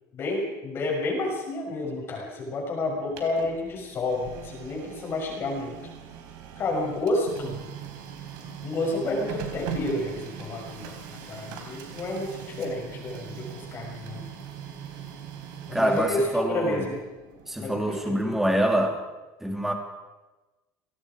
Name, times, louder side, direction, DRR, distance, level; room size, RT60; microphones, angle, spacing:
voice 1, 0.1-5.8 6.6-7.6 8.6-10.9 11.3-14.2 15.7-17.0 17.6-18.4, left 2 dB, 30° left, 0 dB, 6.4 m, -30 dB
Printer, 2.9-18.7, right 8 dB, 60° right, 3.9 m, -41 dB
voice 2, 15.7-16.9 17.5-19.0 19.4-19.7, right 1 dB, 5° right, 3 dB, 2.9 m, -25 dB
30.0 x 18.5 x 5.0 m, 1.1 s
cardioid pair, 165°, 8 cm